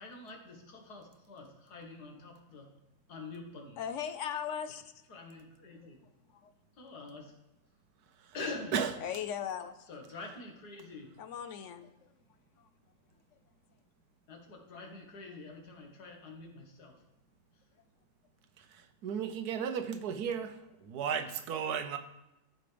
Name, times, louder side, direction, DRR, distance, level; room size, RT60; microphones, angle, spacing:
voice 1, 0.0-2.7 3.1-3.8 5.1-6.0 6.8-7.3 8.3-8.8 9.9-11.1 14.3-16.9, left 3 dB, 85° left, 2.1 m, -45 dB
voice 2, 3.8-5.0 5.7-5.9 6.3-6.5 9.0-9.9 11.2-12.1 12.6-12.7, left 8 dB, 65° left, 0.8 m, -39 dB
voice 3, 18.6-22.0, right 7 dB, 80° right, 1.3 m, -34 dB
14.0 x 5.2 x 3.4 m
omnidirectional pair, 1.6 m